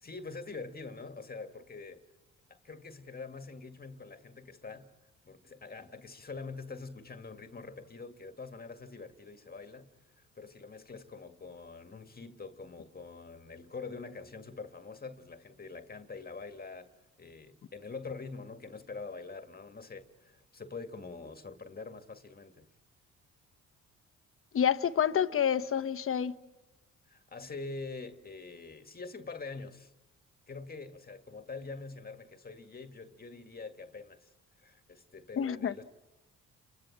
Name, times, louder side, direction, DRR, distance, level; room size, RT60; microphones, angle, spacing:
voice 1, 0.0-2.0 2.5-4.9 5.2-16.9 17.2-22.7 27.1-29.9 30.5-34.3 34.6-35.8, left 4 dB, 30° left, 2.0 m, -45 dB
voice 2, 24.5-26.3 35.4-35.7, left 8 dB, 45° left, 1.2 m, -28 dB
30.0 x 24.0 x 7.5 m
supercardioid pair, 70°, 29 cm